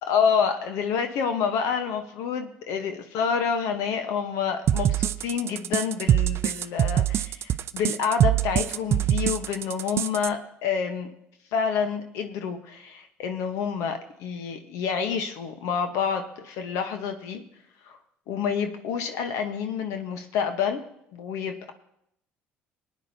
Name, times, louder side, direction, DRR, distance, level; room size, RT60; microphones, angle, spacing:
voice 1, 0.1-11.1 11.5-17.4 17.8-18.0 18.3-20.8 21.1-21.7, left 6 dB, 75° left, 6 dB, 1.1 m, -28 dB
sound 1, 4.7-10.3, right 11 dB, 55° right, 0.4 m, -23 dB
22.0 x 9.4 x 2.8 m, 0.74 s
hypercardioid pair, 65°, 5 cm